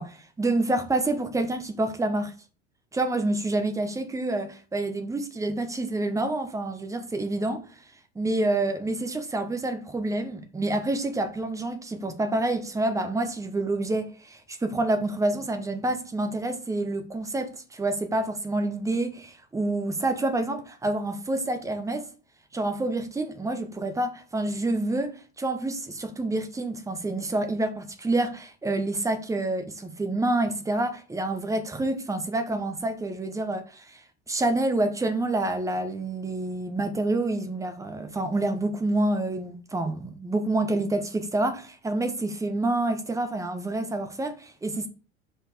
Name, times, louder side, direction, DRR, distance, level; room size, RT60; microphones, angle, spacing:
voice 1, 0.0-2.3 2.9-7.7 8.1-22.1 22.5-34.0 34.3-44.9, right 2 dB, 10° right, 0.9 m, -28 dB
5.2 x 4.2 x 4.9 m
figure-of-eight pair, 75°, 34 cm